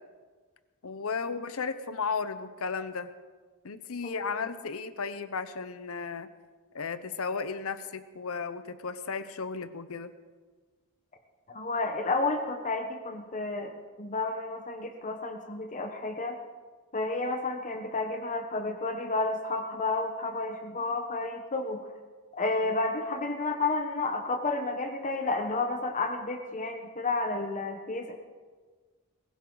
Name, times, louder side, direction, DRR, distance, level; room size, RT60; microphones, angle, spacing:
voice 1, 0.8-3.1 3.6-6.3 6.7-10.1 22.6-22.7, left 5 dB, 70° left, 12 dB, 0.8 m, -34 dB
voice 2, 4.0-4.5 11.5-13.7 14.0-16.4 16.9-21.8 22.3-28.2, left 3 dB, 35° left, 5 dB, 1.0 m, -31 dB
21.5 x 15.5 x 4.0 m, 1.5 s
head